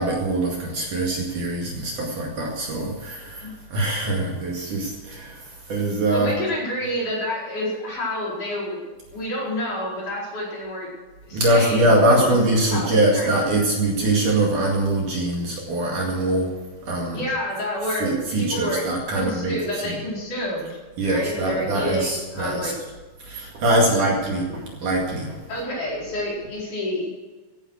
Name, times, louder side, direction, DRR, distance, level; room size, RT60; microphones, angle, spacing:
voice 1, 0.0-6.3 11.3-16.5 16.9-17.2 18.0-19.6 19.8-19.9 21.0-22.7 23.2-25.4, right 1 dB, 55° right, -1 dB, 3.3 m, -23 dB
voice 2, 6.1-8.8 9.1-10.9 11.3-12.4 12.6-13.4 17.0-18.8 19.1-20.7 21.0-22.7 24.0-24.1 25.5-27.1, equal, 45° left, -4 dB, 5.9 m, -28 dB
15.5 x 10.5 x 6.4 m, 1.3 s
omnidirectional pair, 5.0 m